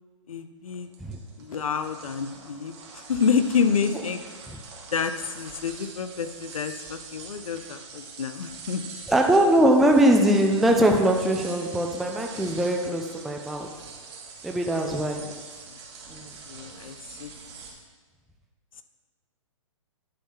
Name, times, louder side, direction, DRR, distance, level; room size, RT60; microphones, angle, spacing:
voice 1, 0.3-0.9 1.4-2.7 3.1-4.2 4.9-8.9 14.7-14.9 15.2-15.4 16.2-17.3, left 6 dB, 85° left, 9 dB, 0.6 m, -28 dB
sound 1, 0.7-17.7, right 4 dB, 50° right, 1.7 m, -44 dB
voice 2, 9.1-13.7 14.4-15.2 16.1-16.3, right 1 dB, ahead, 1 dB, 0.3 m, -21 dB
10.5 x 3.7 x 5.7 m, 1.3 s
hypercardioid pair, 140°, 17 cm